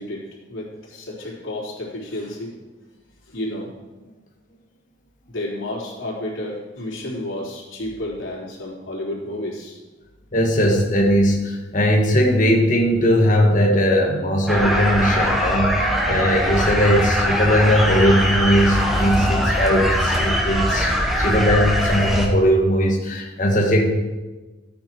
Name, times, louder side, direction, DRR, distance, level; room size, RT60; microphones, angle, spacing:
voice 1, 0.0-2.5 3.3-3.7 5.3-9.8 21.2-21.3, left 1 dB, 90° left, -4 dB, 3.7 m, -31 dB
voice 2, 10.3-23.9, equal, 40° left, 0 dB, 1.6 m, -19 dB
sound 1, 14.5-22.3, equal, ahead, 1.4 m, -21 dB
13.0 x 8.6 x 4.6 m, 1.2 s
head